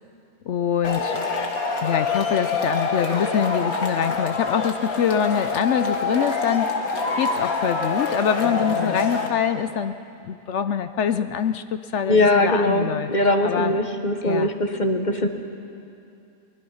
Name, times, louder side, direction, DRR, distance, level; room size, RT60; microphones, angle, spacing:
voice 1, 0.5-1.2 1.8-6.8 7.2-10.0 10.2-13.1 13.4-13.8 14.2-14.5, left 8 dB, 65° left, 10 dB, 0.8 m, -24 dB
Male speech man speaking / Shout / Clapping, 0.8-9.3, left 4 dB, 80° left, 2.1 m, -26 dB
voice 2, 12.1-15.3, left 1 dB, 35° left, 5 dB, 1.2 m, -21 dB
23.5 x 19.5 x 5.6 m, 2.6 s
omnidirectional pair, 1.5 m